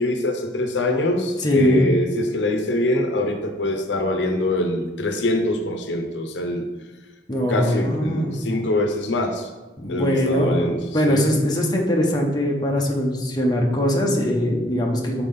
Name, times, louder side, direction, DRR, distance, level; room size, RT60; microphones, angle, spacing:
voice 1, 0.0-6.7 7.5-9.5 9.9-10.8 11.1-11.3, left 1 dB, 85° left, 5 dB, 0.8 m, -24 dB
voice 2, 1.4-1.8 7.3-8.4 9.8-15.3, equal, 25° left, -1 dB, 1.0 m, -21 dB
5.5 x 4.4 x 5.5 m, 1.2 s
head